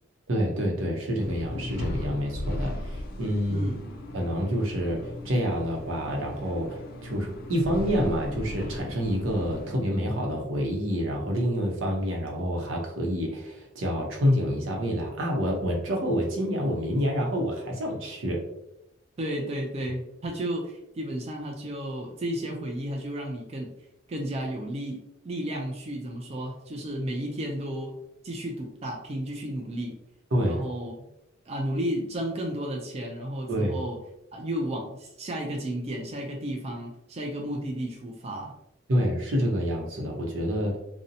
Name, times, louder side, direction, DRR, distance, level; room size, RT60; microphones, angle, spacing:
voice 1, 0.3-3.7 4.1-5.0 5.2-18.4 30.3-30.7 33.5-33.8 38.9-40.8, equal, 85° right, 0 dB, 0.7 m, -27 dB
sound 1, 1.2-9.7, left 1 dB, 50° left, 0.3 m, -37 dB
voice 2, 3.5-3.9 19.2-23.8 24.1-28.0 28.2-30.0 30.4-30.9 31.5-34.0 34.3-38.5, right 1 dB, 30° right, 0 dB, 0.3 m, -33 dB
2.6 x 2.1 x 2.6 m, 0.85 s
head